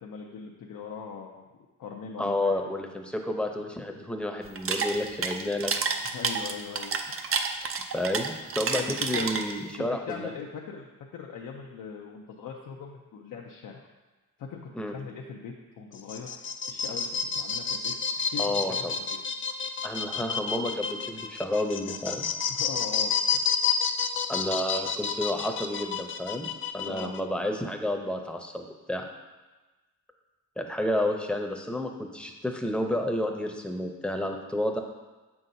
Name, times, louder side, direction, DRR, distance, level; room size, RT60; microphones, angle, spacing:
voice 1, 0.0-1.4 1.8-2.5 6.0-7.3 8.8-9.3 9.8-13.9 14.4-14.6 14.9-16.3 16.7-17.1 17.3-18.4 18.7-19.0 22.5-23.5 26.9-27.1, left 6 dB, 80° left, -1 dB, 0.7 m, -40 dB
voice 2, 2.2-5.7 7.9-10.3 14.7-14.9 18.4-18.9 19.8-22.3 24.3-26.5 26.7-29.0 30.6-34.8, left 1 dB, 5° left, 2 dB, 0.7 m, -30 dB
sound 1, 4.4-9.8, right 5 dB, 45° right, 0.5 m, -29 dB
sound 2, 15.9-27.2, left 6 dB, 40° left, 0.4 m, -30 dB
7.2 x 5.8 x 2.7 m, 1.2 s
cardioid pair, 90°, 32 cm